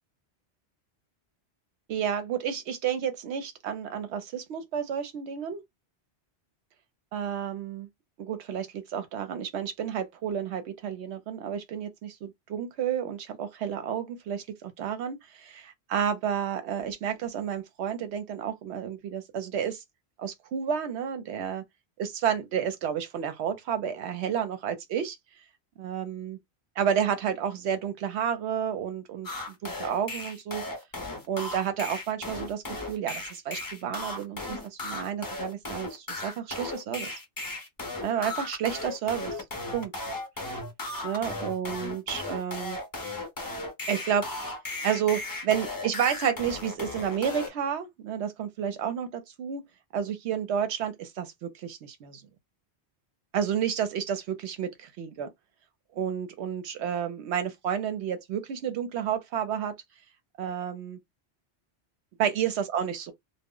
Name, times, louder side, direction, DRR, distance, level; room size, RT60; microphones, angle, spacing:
voice 1, 1.9-5.6 7.1-7.9 8.2-19.8 20.2-21.6 22.0-25.2 25.8-26.4 26.8-29.3 29.6-30.6 31.3-37.1 38.0-39.4 39.7-39.9 41.0-42.8 43.9-44.5 44.8-49.6 49.9-52.2 53.3-55.3 55.9-59.7 60.4-61.0 62.2-63.1, right 8 dB, 80° right, 0.8 m, -31 dB
sound 1, 29.2-47.5, left 2 dB, 25° left, 0.5 m, -36 dB
2.1 x 2.0 x 3.6 m
omnidirectional pair, 1.1 m